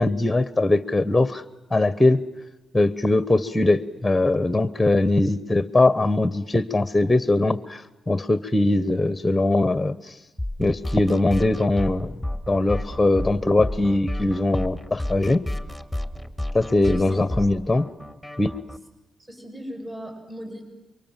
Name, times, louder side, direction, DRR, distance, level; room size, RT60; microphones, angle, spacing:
voice 1, 0.0-1.4 1.7-2.2 2.7-10.2 10.6-12.2 12.5-15.4 16.5-17.9 18.4-18.6, left 2 dB, 10° left, 14 dB, 1.0 m, -21 dB
sound 1, 10.4-18.8, left 1 dB, 5° right, 2.4 m, -31 dB
voice 2, 16.8-17.4 19.2-20.6, equal, 20° right, 4 dB, 7.9 m, -38 dB
29.5 x 24.5 x 7.4 m, 1.1 s
cardioid pair, 80°, 0 cm